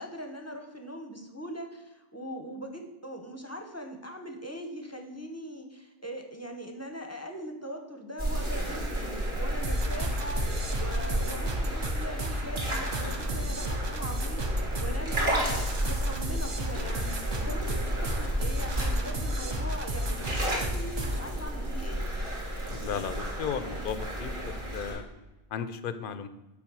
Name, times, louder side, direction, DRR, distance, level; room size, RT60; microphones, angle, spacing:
voice 1, 0.0-22.1, equal, 15° left, 4 dB, 0.7 m, -41 dB
sound 1, 8.2-25.0, right 1 dB, 55° right, 2.0 m, -32 dB
sound 2, 9.6-21.3, right 1 dB, 30° right, 0.6 m, -33 dB
voice 2, 22.7-25.0 25.5-26.3, left 7 dB, 60° left, 12 dB, 0.7 m, -35 dB
7.4 x 4.1 x 6.1 m, 1.0 s
omnidirectional pair, 1.1 m